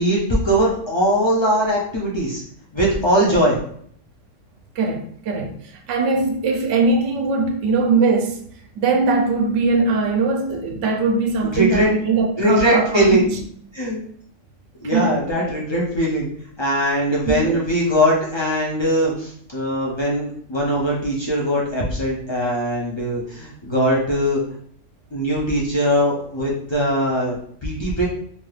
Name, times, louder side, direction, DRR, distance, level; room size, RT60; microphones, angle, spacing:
voice 1, 0.0-2.4 2.7-3.6 11.5-11.9 12.4-13.3 13.7-14.0 14.8-16.3 16.6-24.4 25.1-27.4 27.6-28.1, equal, 50° left, 0.3 m, -20 dB
voice 2, 4.8-8.4 8.8-13.4 14.8-15.2 17.3-17.6, right 3 dB, 75° right, 0.9 m, -21 dB
2.7 x 2.3 x 3.2 m
omnidirectional pair, 1.3 m